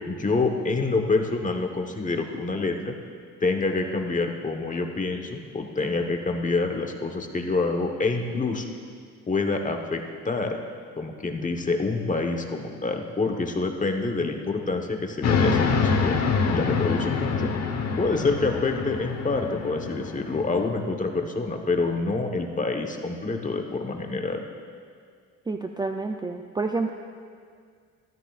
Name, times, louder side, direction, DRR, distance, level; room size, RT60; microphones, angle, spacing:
voice 1, 0.1-3.0 3.4-8.7 9.3-10.6 11.0-16.1 16.5-17.5 18.0-24.4, left 3 dB, 25° left, 3 dB, 1.2 m, -27 dB
sound 1, 15.2-20.7, left 5 dB, 60° left, 1.2 m, -26 dB
voice 2, 25.5-26.9, right 3 dB, 15° right, 4 dB, 0.5 m, -29 dB
15.0 x 13.5 x 2.5 m, 2.1 s
cardioid pair, 90°, 30 cm